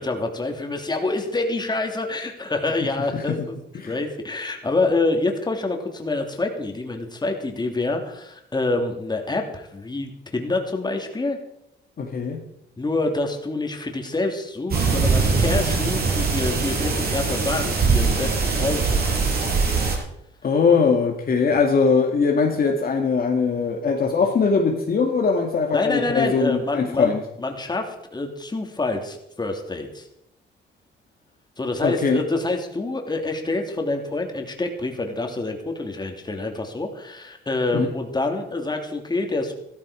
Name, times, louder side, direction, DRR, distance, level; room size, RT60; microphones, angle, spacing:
voice 1, 0.0-3.6 3.9-11.4 12.8-19.2 21.5-21.6 25.7-27.1 27.4-30.1 31.6-39.5, left 2 dB, 20° left, 2.9 m, -27 dB
voice 2, 12.0-12.4 20.4-27.2 31.8-32.2 37.7-37.9, left 5 dB, 50° left, 2.1 m, -21 dB
sound 1, 14.7-19.9, right 4 dB, 50° right, 6.1 m, -22 dB
14.0 x 13.5 x 5.0 m
cardioid pair, 90°, 20 cm